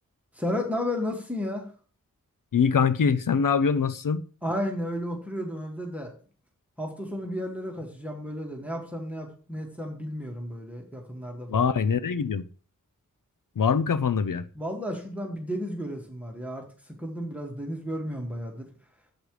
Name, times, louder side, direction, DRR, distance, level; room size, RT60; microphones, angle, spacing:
voice 1, 0.3-1.7 4.4-6.1 6.8-11.7 14.6-18.7, equal, 5° right, 2.1 m, -33 dB
voice 2, 2.5-4.2 11.5-12.4 13.6-14.4, left 6 dB, 75° left, 0.6 m, -23 dB
11.0 x 8.1 x 3.3 m
wide cardioid pair, 65°, 33 cm